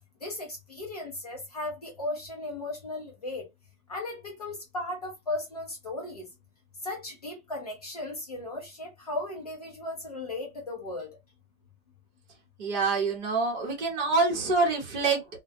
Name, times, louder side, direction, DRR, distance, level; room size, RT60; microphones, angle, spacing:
voice 1, 0.2-3.5 3.9-6.3 6.8-11.2, left 2 dB, 30° left, 0.4 m, -36 dB
voice 2, 12.6-15.4, right 3 dB, 30° right, 0.9 m, -26 dB
2.2 x 2.2 x 2.5 m
supercardioid pair, 175°, 44 cm